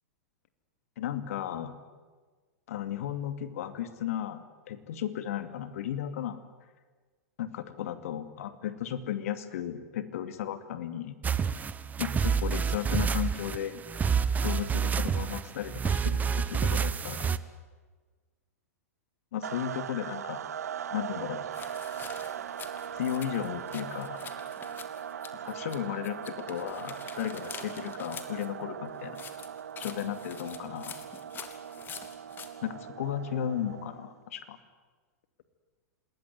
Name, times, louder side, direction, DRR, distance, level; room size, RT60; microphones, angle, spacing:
voice 1, 1.0-1.7 2.7-6.4 7.4-11.2 12.0-13.8 14.4-17.4 19.3-20.4 20.9-21.4 22.9-24.3 25.4-29.2 29.8-31.0 32.6-34.6, left 10 dB, 60° left, 10 dB, 2.5 m, -35 dB
sound 1, 11.2-17.4, right 6 dB, 20° right, 1.1 m, -28 dB
sound 2, 19.4-34.2, right 9 dB, 75° right, 0.8 m, -40 dB
sound 3, 21.5-25.8 26.0-28.5 29.1-32.5, left 7 dB, 25° left, 2.9 m, -46 dB
28.0 x 20.5 x 9.6 m, 1.4 s
hypercardioid pair, 105°, 9 cm